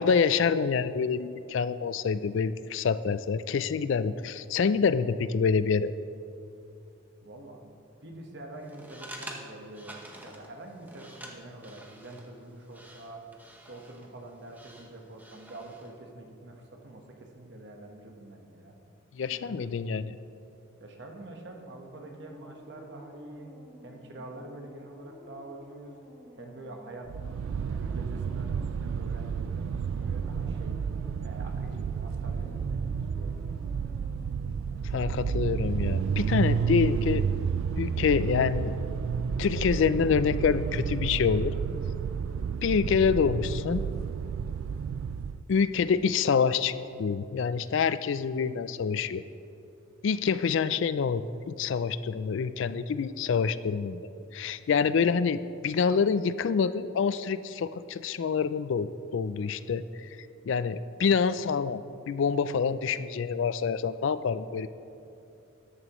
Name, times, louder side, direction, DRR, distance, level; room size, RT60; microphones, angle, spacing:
voice 1, 0.0-5.9 19.1-20.1 34.9-37.2 37.8-38.7 39.4-41.5 42.6-43.8 45.5-46.7 47.0-49.2 50.0-54.0 54.3-60.1 60.4-61.8 62.1-64.7, left 6 dB, 65° left, 14 dB, 0.3 m, -26 dB
voice 2, 7.2-7.8 8.0-13.2 13.7-18.7 19.3-19.7 20.8-23.5 23.8-26.0 26.4-27.1 27.4-30.8 31.2-33.5, right 2 dB, 55° right, 2 dB, 1.3 m, -46 dB
sound 1, 8.6-15.9, right 1 dB, 10° right, 0.8 m, -48 dB
sound 2, 22.0-35.3, left 1 dB, 10° left, 1.5 m, -53 dB
sound 3, 27.1-45.4, right 6 dB, 75° right, 0.3 m, -31 dB
14.0 x 11.0 x 3.1 m, 2.6 s
head